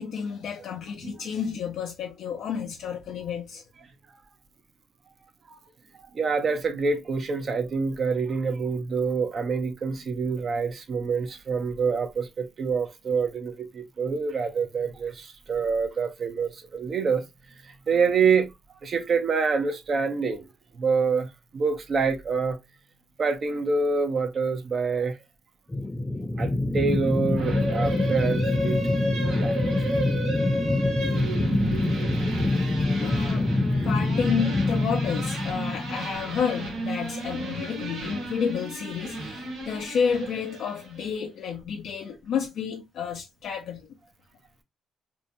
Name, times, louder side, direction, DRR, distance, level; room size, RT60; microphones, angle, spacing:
voice 1, 0.0-3.6 33.0-33.5 33.8-43.9, left 7 dB, 75° left, 0.4 m, -30 dB
voice 2, 6.1-17.2 17.6-18.5 18.8-20.5 20.7-22.6 23.2-25.2 26.4-28.8 29.4-29.9 32.6-32.7, right 5 dB, 50° right, 0.5 m, -26 dB
sound 1, 25.7-36.6, left 2 dB, 15° left, 0.6 m, -26 dB
sound 2, 27.4-41.0, right 1 dB, 85° right, 1.1 m, -32 dB
2.7 x 2.1 x 2.6 m
cardioid pair, 90°, 0 cm